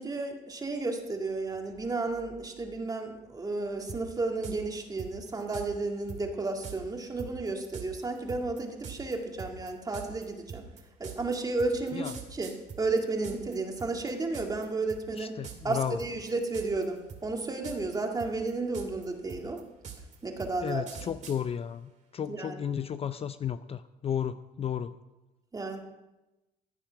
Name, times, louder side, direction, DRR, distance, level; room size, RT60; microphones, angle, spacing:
voice 1, 0.0-10.6 11.0-12.5 12.8-15.3 15.6-19.6 20.2-21.1 22.3-22.6 25.5-25.8, right 3 dB, 20° right, 2 dB, 2.1 m, -32 dB
sound 1, 3.9-4.0 4.4-4.6 5.0-5.7 6.1-6.2 6.6-6.8 7.2-13.5 13.8-14.6 14.9-15.2 15.4-15.7 16.0-16.8 17.1-17.9 18.2-21.4, right 7 dB, 45° right, 2.4 m, -42 dB
voice 2, 15.1-16.0 20.6-24.9, left 8 dB, 35° left, 12 dB, 0.5 m, -33 dB
15.0 x 9.0 x 5.8 m, 1.0 s
cardioid pair, 110°, 17 cm